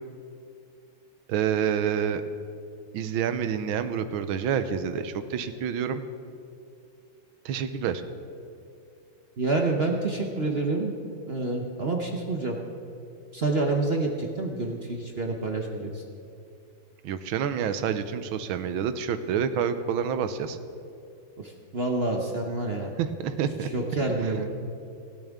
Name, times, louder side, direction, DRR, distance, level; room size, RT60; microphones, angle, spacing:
voice 1, 1.3-2.2 2.9-6.0 7.4-8.0 17.0-20.6 23.0-23.7, right 8 dB, 85° right, 10 dB, 1.5 m, -28 dB
voice 2, 9.4-10.9 11.3-12.6 13.3-16.0 21.4-22.9 23.4-24.5, right 2 dB, 45° right, 1 dB, 0.8 m, -28 dB
26.0 x 8.9 x 3.6 m, 2.5 s
omnidirectional pair, 2.2 m